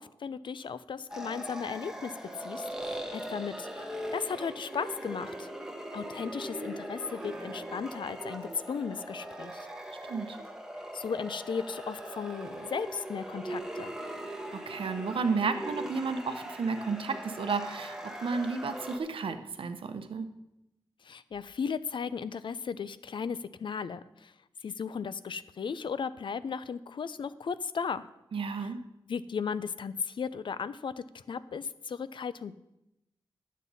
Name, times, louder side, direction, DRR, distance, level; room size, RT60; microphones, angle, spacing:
voice 1, 0.0-2.1 2.4-5.5 5.9-9.7 10.9-13.9 21.0-24.3 24.6-28.1 28.6-28.7 29.1-32.6, left 6 dB, 65° left, 15 dB, 0.4 m, -36 dB
sound 1, 1.1-19.0, right 1 dB, 5° right, 1.1 m, -40 dB
voice 2, 14.5-20.3 28.3-28.8, right 4 dB, 75° right, 8 dB, 0.8 m, -32 dB
11.0 x 7.4 x 4.1 m, 0.89 s
wide cardioid pair, 115°, 9 cm